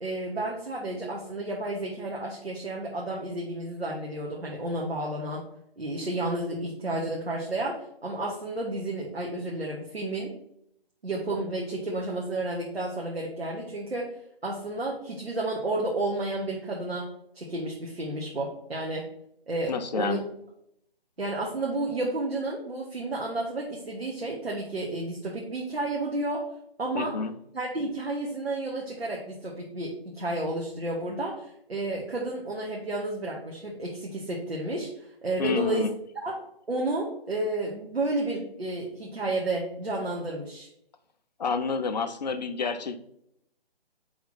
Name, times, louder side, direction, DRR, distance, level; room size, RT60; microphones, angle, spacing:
voice 1, 0.0-5.4 5.8-7.8 8.0-10.3 11.0-14.1 14.4-17.1 17.3-19.0 19.5-20.2 21.2-26.4 26.8-27.1 27.5-34.9 35.2-35.9 36.2-36.4 36.7-40.7, right 2 dB, 90° right, -3 dB, 1.4 m, -31 dB
voice 2, 19.7-20.2 26.9-27.3 35.4-35.9 41.4-43.0, left 5 dB, 45° left, 7 dB, 0.5 m, -29 dB
4.9 x 3.5 x 5.6 m, 0.75 s
figure-of-eight pair, 150°, 30 cm